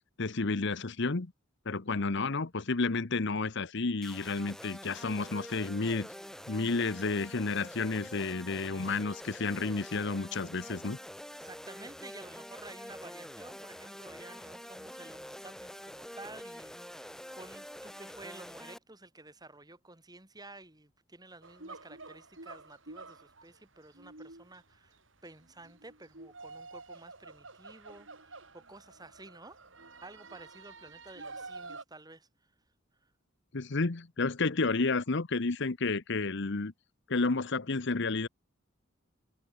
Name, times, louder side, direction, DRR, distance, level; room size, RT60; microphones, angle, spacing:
voice 1, 0.2-1.3 1.7-6.1 6.5-11.0 33.5-36.7 37.1-38.3, left 3 dB, 60° left, 1.0 m, -31 dB
sound 1, 4.0-18.8, equal, 5° left, 3.9 m, -46 dB
voice 2, 11.4-25.0 25.2-32.5 33.0-33.1, right 2 dB, 20° right, 5.5 m, -52 dB
sound 2, 21.4-31.8, right 3 dB, 65° right, 6.8 m, -49 dB
head